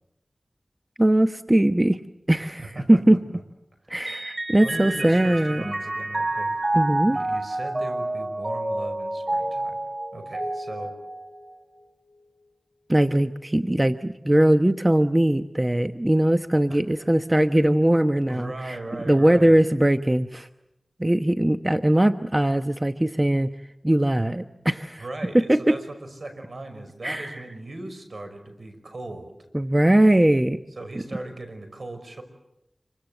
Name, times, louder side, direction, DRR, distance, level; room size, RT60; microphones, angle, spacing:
voice 1, 1.0-2.0 2.3-3.2 3.9-5.7 6.7-7.2 12.9-18.8 19.1-20.5 21.0-23.5 23.8-25.0 25.5-25.8 27.0-27.4 29.5-30.6, right 1 dB, 25° right, 9 dB, 1.0 m, -20 dB
voice 2, 2.4-3.0 4.6-6.6 7.1-9.8 10.1-10.9 16.7-17.1 18.3-19.6 25.0-29.4 30.8-32.2, right 2 dB, 70° right, 7 dB, 5.6 m, -38 dB
Mallet percussion, 4.1-11.8, right 2 dB, 40° right, 4.0 m, -29 dB
27.5 x 24.5 x 7.9 m, 0.88 s
cardioid pair, 40°, 0 cm